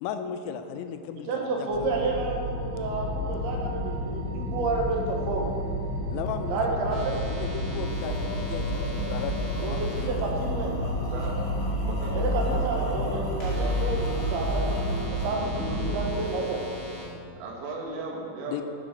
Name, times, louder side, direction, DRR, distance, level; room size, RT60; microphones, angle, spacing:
voice 1, 0.0-1.9 6.1-9.3 9.7-10.2 11.0-11.1 18.5-18.6, left 8 dB, 85° left, 8 dB, 2.9 m, -36 dB
voice 2, 1.3-5.5 6.5-7.2 9.6-10.8 12.1-14.8 15.1-16.6, right 3 dB, 70° right, 0 dB, 2.6 m, -30 dB
sound 1, 1.7-16.0, equal, 40° right, 1.5 m, -30 dB
sound 2, 6.9-10.0 13.4-17.0, left 1 dB, 25° left, 1.5 m, -43 dB
Male singing, 7.3-17.2, left 2 dB, 65° left, 1.9 m, -40 dB
voice 3, 11.0-11.5 11.8-13.8 15.6-15.9 17.4-18.6, right 3 dB, 85° right, -1 dB, 3.7 m, -36 dB
12.5 x 5.2 x 5.1 m, 2.4 s
omnidirectional pair, 5.4 m